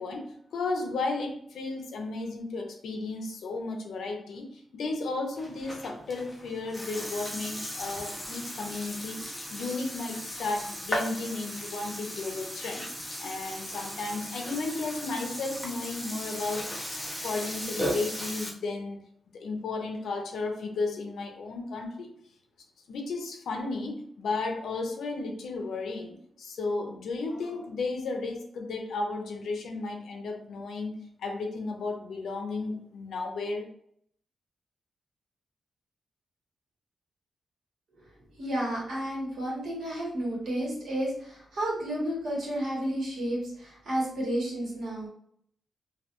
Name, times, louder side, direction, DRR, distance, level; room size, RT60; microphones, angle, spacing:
voice 1, 0.0-12.9 13.2-16.7 17.2-19.0 19.3-22.1 22.9-30.9 31.2-33.6, left 3 dB, 75° left, 3 dB, 0.5 m, -34 dB
Burping eructation, 5.4-18.5, equal, ahead, 0.5 m, -37 dB
voice 2, 38.4-45.1, right 1 dB, 60° right, -5 dB, 1.1 m, -31 dB
2.3 x 2.2 x 2.8 m, 0.68 s
wide cardioid pair, 180°, 0 cm